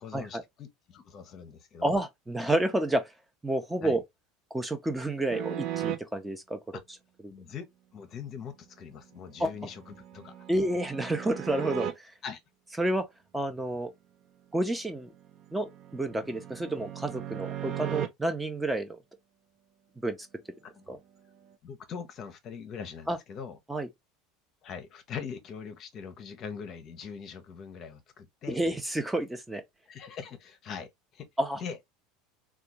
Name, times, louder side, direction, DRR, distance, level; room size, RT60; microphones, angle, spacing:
voice 1, 0.0-1.9 3.8-4.0 7.3-10.3 12.2-12.4 20.7-21.0 21.6-23.6 24.6-28.6 29.9-31.3 31.6-31.8, left 6 dB, 40° left, 0.7 m, -42 dB
voice 2, 1.8-3.1 3.4-4.0 4.5-6.8 7.2-7.3 9.4-9.5 10.5-12.1 12.8-13.1 13.3-13.9 14.5-15.1 15.5-19.0 20.0-20.2 20.9-21.0 23.1-23.2 23.7-23.9 28.5-29.6 31.4-31.6, right 1 dB, 10° right, 0.6 m, -30 dB
sound 1, 5.3-6.0 9.3-11.9 15.0-18.1, right 11 dB, 50° right, 0.6 m, -37 dB
3.4 x 2.3 x 2.8 m
figure-of-eight pair, 75°, 0 cm